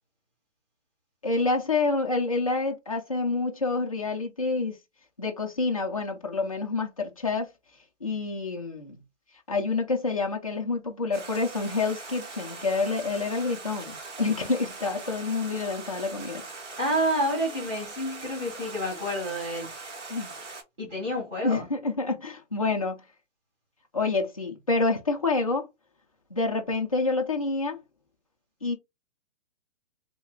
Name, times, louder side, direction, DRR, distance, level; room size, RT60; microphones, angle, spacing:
voice 1, 1.2-4.8 5.2-7.5 8.0-9.0 9.5-16.4 20.1-20.3 21.4-23.0 23.9-25.7 26.3-27.8 28.6-28.7, left 3 dB, 30° left, 0.4 m, -28 dB
Stream, 11.1-20.6, right 3 dB, 65° right, 1.7 m, -41 dB
voice 2, 16.8-19.7 20.8-21.6, equal, 5° right, 0.8 m, -29 dB
3.2 x 2.2 x 3.5 m
hypercardioid pair, 175°, 37 cm